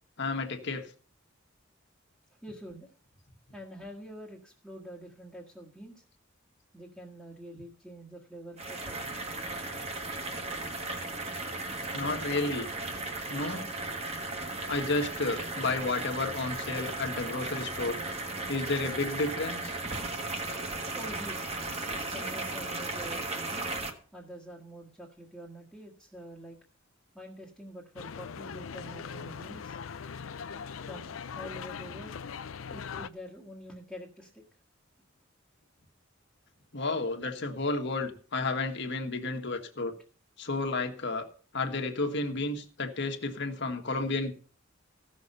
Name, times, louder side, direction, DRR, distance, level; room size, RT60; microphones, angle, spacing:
voice 1, 0.2-0.9 11.9-12.7 13.3-13.7 14.7-18.0 18.5-19.8 36.7-39.9 40.4-41.3 41.5-44.3, left 3 dB, 60° left, 5 dB, 1.5 m, -31 dB
voice 2, 2.4-2.9 3.5-6.0 6.7-9.0 20.9-21.4 22.1-23.6 24.1-26.6 27.1-29.8 30.7-32.2 32.7-34.4, equal, ahead, -4 dB, 1.5 m, -46 dB
sound 1, 8.6-23.9, right 2 dB, 30° right, 1.5 m, -36 dB
sound 2, 28.0-33.1, left 6 dB, 80° left, 0.5 m, -40 dB
15.5 x 6.5 x 5.4 m, 0.41 s
head